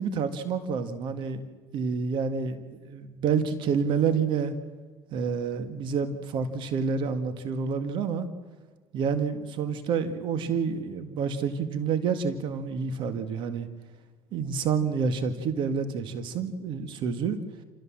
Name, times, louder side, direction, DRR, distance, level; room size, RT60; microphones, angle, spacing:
voice 1, 0.0-1.4 1.7-2.6 2.9-4.5 5.1-8.3 8.9-13.7 14.3-17.4, right 6 dB, 60° right, 10 dB, 1.9 m, -28 dB
28.0 x 15.5 x 7.6 m, 1.4 s
supercardioid pair, 100°, 9 cm